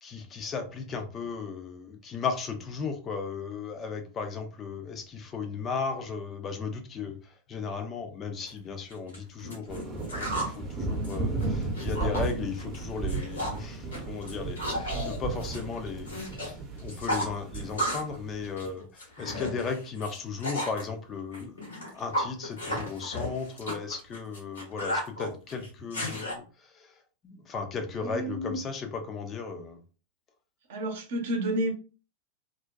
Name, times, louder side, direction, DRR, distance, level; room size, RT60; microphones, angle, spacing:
voice 1, 0.0-21.5 21.9-27.0 27.2-29.8, left 5 dB, 25° left, 6 dB, 0.4 m, -36 dB
sound 1, 8.5-8.6 8.9-10.6 10.9-12.3 12.6-12.8 13.1-13.6 13.9-16.5 16.8-18.2 18.4-20.8 21.3-26.3, equal, 75° left, 1.1 m, -34 dB
sound 2, 9.7-18.7, right 3 dB, 25° right, 0.7 m, -34 dB
voice 2, 27.9-28.6 30.7-31.7, right 1 dB, 55° right, 3 dB, 0.7 m, -30 dB
2.4 x 2.1 x 2.4 m, 0.36 s
figure-of-eight pair, 90°, 0 cm